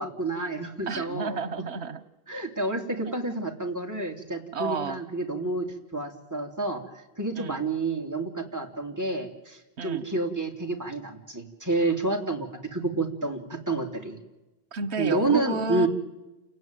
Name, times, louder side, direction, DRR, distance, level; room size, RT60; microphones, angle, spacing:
voice 1, 0.0-1.4 2.3-5.7 5.9-6.8 7.2-14.2 15.0-15.9, right 2 dB, 15° right, 2 dB, 3.2 m, -29 dB
voice 2, 0.9-2.0 3.0-3.2 4.5-5.0 7.4-7.6 9.8-10.0 14.7-15.9, right 4 dB, 85° right, 14 dB, 1.3 m, -31 dB
29.0 x 18.0 x 9.3 m, 1.0 s
omnidirectional pair, 1.1 m